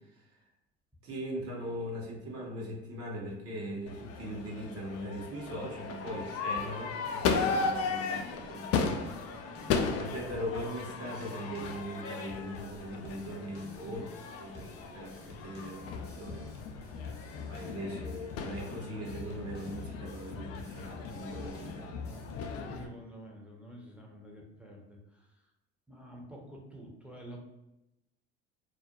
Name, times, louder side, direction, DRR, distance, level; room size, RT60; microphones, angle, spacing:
voice 1, 1.0-8.9 10.0-14.0 14.4-16.5 17.4-21.9, equal, 45° right, -1 dB, 0.9 m, -40 dB
Crowd / Fireworks, 3.9-22.9, left 5 dB, 50° left, 0.4 m, -36 dB
sound 1, 6.5-22.5, left 2 dB, 30° left, 0.8 m, -51 dB
voice 2, 8.8-10.1 13.8-14.1 21.8-25.5 25.9-27.4, right 1 dB, 5° right, -1 dB, 0.7 m, -50 dB
2.4 x 2.1 x 2.8 m, 0.88 s
hypercardioid pair, 65°, 33 cm